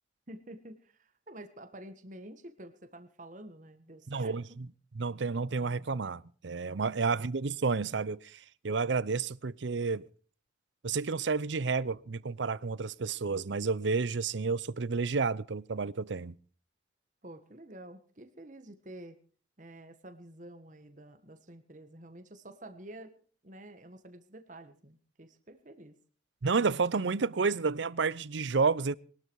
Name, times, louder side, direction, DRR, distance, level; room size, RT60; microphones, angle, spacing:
voice 1, 0.3-4.3 7.0-7.2 17.2-19.2 19.6-23.1 23.4-25.9, right 1 dB, 40° right, 1.5 m, -49 dB
voice 2, 4.1-4.4 5.0-10.1 10.8-16.4 26.4-29.0, right 4 dB, 75° right, 0.6 m, -30 dB
21.5 x 12.5 x 4.7 m
head